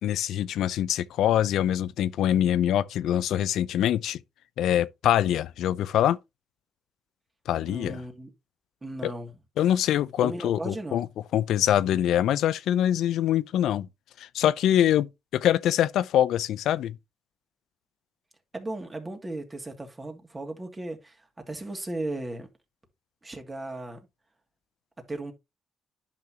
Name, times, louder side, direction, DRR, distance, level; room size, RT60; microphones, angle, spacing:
voice 1, 0.0-4.2 4.6-6.2 7.5-8.0 9.0-9.1 9.6-11.1 11.3-13.9 14.2-17.0, left 11 dB, 80° left, 0.5 m, -24 dB
voice 2, 7.6-8.3 8.8-9.3 10.2-11.1 18.5-22.5 23.2-24.1 25.1-25.3, right 2 dB, 20° right, 2.4 m, -36 dB
10.5 x 5.9 x 2.9 m
cardioid pair, 90°, 0 cm